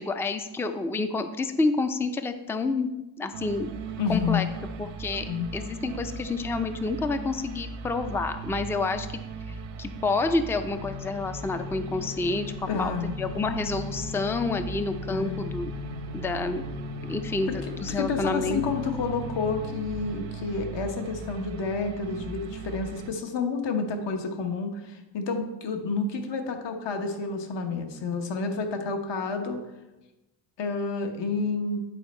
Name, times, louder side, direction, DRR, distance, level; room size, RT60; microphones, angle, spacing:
voice 1, 0.0-2.9 3.2-3.7 4.1-4.5 4.8-9.2 9.8-15.7 16.1-16.6 17.0-18.6, left 3 dB, 5° left, 9 dB, 0.3 m, -29 dB
sound 1, 3.3-23.1, right 4 dB, 80° right, 0.9 m, -39 dB
voice 2, 4.0-4.4 5.2-5.5 12.7-13.1 15.1-15.4 17.5-29.6 30.6-31.8, left 4 dB, 65° left, 5 dB, 1.2 m, -30 dB
sound 2, 10.7-20.1, left 3 dB, 40° left, 1.0 m, -39 dB
9.9 x 4.4 x 4.3 m, 1.0 s
cardioid pair, 100°, 47 cm